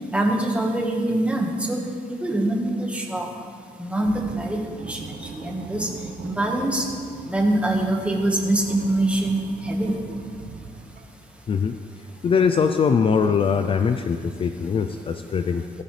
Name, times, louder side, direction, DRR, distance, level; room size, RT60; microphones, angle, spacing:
voice 1, 0.1-1.8 2.2-3.3 3.8-4.6 4.9-5.9 6.2-6.8 7.3-10.0, right 1 dB, 10° right, 0 dB, 1.5 m, -24 dB
sound 1, 4.0-11.3, right 5 dB, 65° right, 0.9 m, -40 dB
voice 2, 12.2-15.8, left 6 dB, 35° left, 8 dB, 0.4 m, -22 dB
17.5 x 12.0 x 3.3 m, 2.1 s
wide cardioid pair, 165°, 16 cm